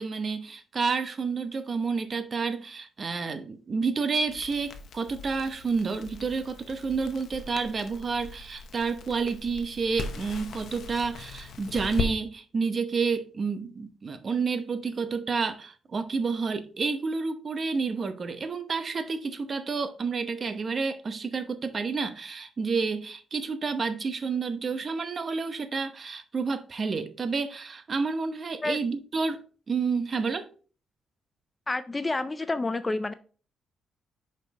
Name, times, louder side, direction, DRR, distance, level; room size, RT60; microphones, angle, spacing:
voice 1, 0.0-29.4 29.7-30.5, right 4 dB, 35° right, 0.8 m, -30 dB
Crackle, 4.2-12.1, left 4 dB, 65° left, 0.9 m, -39 dB
voice 2, 31.7-33.1, left 2 dB, 20° left, 0.4 m, -29 dB
5.3 x 5.2 x 4.1 m
cardioid pair, 115°, 0 cm